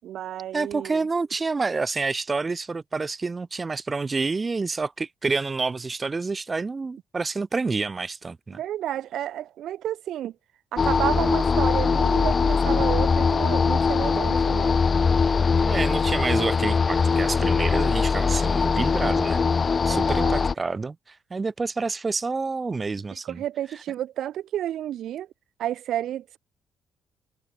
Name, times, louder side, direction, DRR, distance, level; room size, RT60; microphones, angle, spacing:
voice 1, 0.0-1.0 8.5-10.3 10.7-14.8 19.8-20.4 23.2-25.3 25.6-26.4, right 11 dB, 75° right, 7.3 m, -31 dB
voice 2, 0.5-8.6 15.6-19.4 19.8-23.4, right 4 dB, 30° right, 5.9 m, -28 dB
sound 1, 10.8-20.5, left 5 dB, 35° left, 8.0 m, -21 dB
cardioid pair, 90°, 0 cm